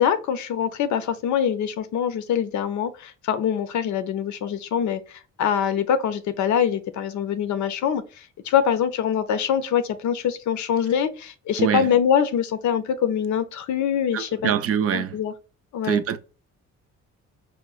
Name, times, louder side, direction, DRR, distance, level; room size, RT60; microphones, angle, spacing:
voice 1, 0.0-14.5 14.9-15.3 15.7-16.0, left 8 dB, 70° left, 0.6 m, -24 dB
voice 2, 11.6-11.9 14.1-15.2 15.8-16.2, right 8 dB, 50° right, 0.5 m, -24 dB
4.9 x 2.1 x 2.3 m
cardioid pair, 90°, 30 cm